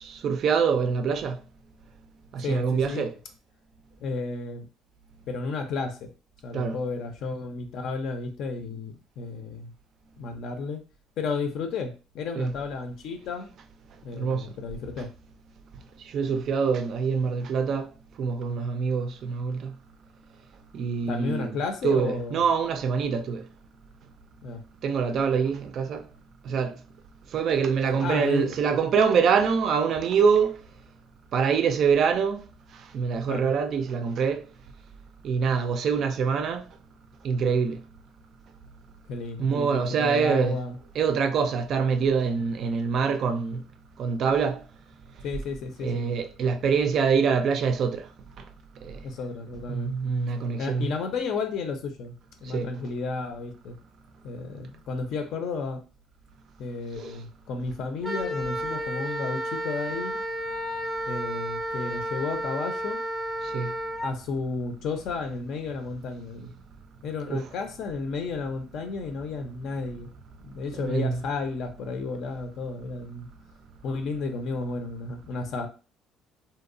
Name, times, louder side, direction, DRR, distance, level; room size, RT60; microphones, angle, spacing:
voice 1, 0.0-1.4 2.3-3.1 6.5-6.8 12.4-12.5 14.1-14.5 16.1-17.9 18.2-19.8 20.7-21.6 21.8-23.5 24.8-26.1 26.4-26.8 27.3-30.6 31.3-32.4 32.9-34.4 35.2-36.6 37.2-37.8 39.4-40.6 41.0-43.6 44.0-44.6 45.8-48.1 48.8-49.0 49.7-50.9 52.5-52.7 57.0-57.2 63.4-63.7 67.3-67.5 70.7-71.2, right 6 dB, 50° right, 0.3 m, -25 dB
voice 2, 2.4-3.1 4.0-4.7 5.3-6.1 6.4-9.7 10.2-10.8 11.2-13.5 14.0-15.1 21.1-22.5 24.4-24.6 28.0-28.5 33.3-33.5 39.1-40.8 45.2-46.0 49.0-50.0 50.6-52.2 52.4-53.8 54.2-55.8 56.6-60.2 61.1-63.0 64.0-66.5 67.0-70.1 70.4-73.3 73.8-75.7, left 4 dB, 60° left, 0.5 m, -32 dB
Wind instrument woodwind instrument, 58.0-64.1, equal, 5° right, 0.6 m, -32 dB
2.7 x 2.0 x 2.5 m
cardioid pair, 135°, 0 cm